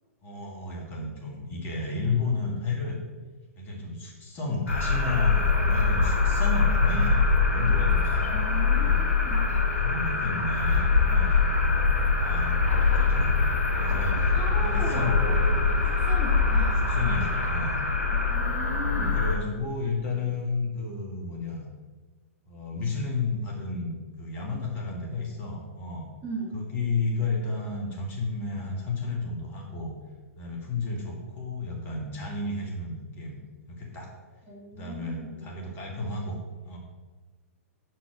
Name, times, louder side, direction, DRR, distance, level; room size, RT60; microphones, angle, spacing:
voice 1, 0.2-3.0 3.6-9.0 9.8-11.4 12.2-12.7 12.9-15.1 16.8-17.8 18.8-21.6 22.5-26.1 26.5-29.9 30.4-33.4 33.7-34.1 34.7-36.4 36.6-36.8, left 3 dB, 25° left, -1 dB, 1.9 m, -32 dB
sound 1, 4.7-19.4, left 4 dB, 70° left, 1.6 m, -23 dB
voice 2, 8.3-9.5 12.9-13.0 14.3-16.8 18.1-19.4 26.2-26.6 34.5-35.4, right 1 dB, 20° right, -4 dB, 1.1 m, -38 dB
6.0 x 4.6 x 5.9 m, 1.3 s
figure-of-eight pair, 110°, 8 cm